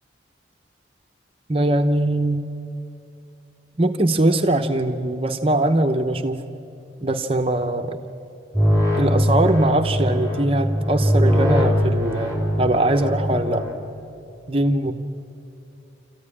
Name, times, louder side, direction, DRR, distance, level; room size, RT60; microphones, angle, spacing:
voice 1, 1.5-2.4 3.8-6.4 7.0-8.0 8.9-13.7 14.5-14.9, right 1 dB, 30° right, 5 dB, 0.9 m, -21 dB
sound 1, 8.5-13.7, equal, 15° left, 4.0 m, -21 dB
27.0 x 14.5 x 9.9 m, 2.6 s
head